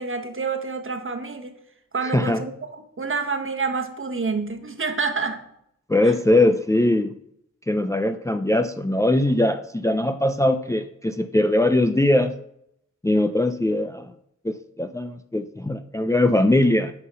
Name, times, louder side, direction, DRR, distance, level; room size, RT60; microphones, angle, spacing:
voice 1, 0.0-1.5 1.9-5.4 6.0-6.1, right 4 dB, 45° right, 5 dB, 1.2 m, -28 dB
voice 2, 2.0-2.4 5.9-7.1 7.7-12.3 13.0-14.1 14.4-16.9, left 1 dB, 10° left, 8 dB, 0.4 m, -21 dB
9.7 x 3.8 x 5.4 m, 0.76 s
cardioid pair, 45°, 30 cm